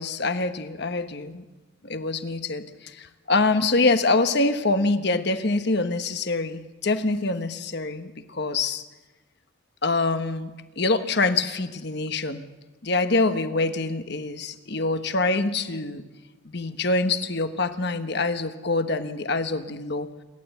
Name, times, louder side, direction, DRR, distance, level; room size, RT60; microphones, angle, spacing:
voice 1, 0.0-1.4 1.8-8.8 9.8-12.4 12.8-16.0 16.4-20.1, left 3 dB, 55° left, 9 dB, 1.2 m, -25 dB
27.0 x 12.0 x 8.1 m, 1.2 s
head